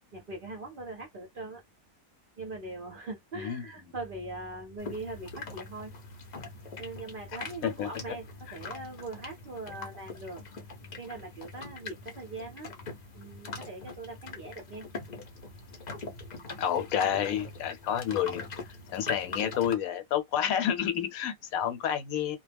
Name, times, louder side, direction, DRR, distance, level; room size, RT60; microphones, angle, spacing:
voice 1, 0.1-1.6 2.4-5.9 6.8-10.4 11.0-12.7 13.1-14.9, right 2 dB, 50° right, 0.7 m, -41 dB
voice 2, 3.4-3.9 7.3-8.2 16.6-18.5 18.9-22.4, left 9 dB, 75° left, 1.0 m, -30 dB
sound 1, 4.8-19.8, left 3 dB, 50° left, 0.5 m, -42 dB
2.2 x 2.1 x 3.3 m
omnidirectional pair, 1.5 m